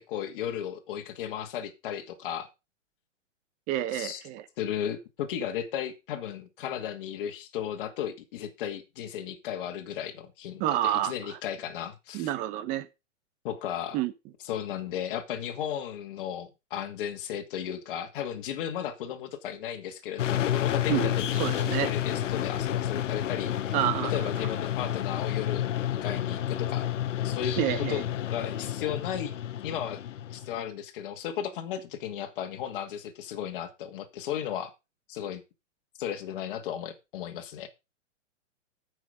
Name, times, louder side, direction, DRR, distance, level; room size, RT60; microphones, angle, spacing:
voice 1, 0.1-2.5 3.9-4.2 4.6-12.3 13.4-14.0 14.5-23.8 24.0-26.9 27.2-27.6 27.9-29.3 29.6-30.0 30.3-34.7 35.1-35.4 36.0-37.7, left 9 dB, 45° left, 2.2 m, -35 dB
voice 2, 3.7-4.4 10.6-11.4 12.1-12.9 13.9-14.1 20.9-21.9 23.7-24.1 27.6-28.0, right 13 dB, 20° right, 0.9 m, -29 dB
sound 1, 20.2-30.6, left 11 dB, 70° left, 1.0 m, -30 dB
14.0 x 6.4 x 5.0 m
hypercardioid pair, 155°, 38 cm